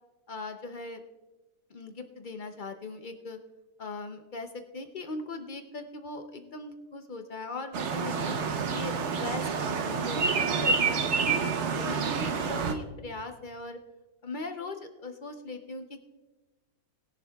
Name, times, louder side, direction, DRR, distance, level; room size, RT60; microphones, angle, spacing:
voice 1, 0.3-1.0 1.7-3.4 3.8-8.3 8.7-9.8 10.1-13.8 14.2-16.0, left 2 dB, 70° left, 6 dB, 0.4 m, -39 dB
sound 1, 7.7-12.7, right 5 dB, 55° right, 1.0 m, -28 dB
19.5 x 11.0 x 2.3 m, 1.2 s
omnidirectional pair, 1.8 m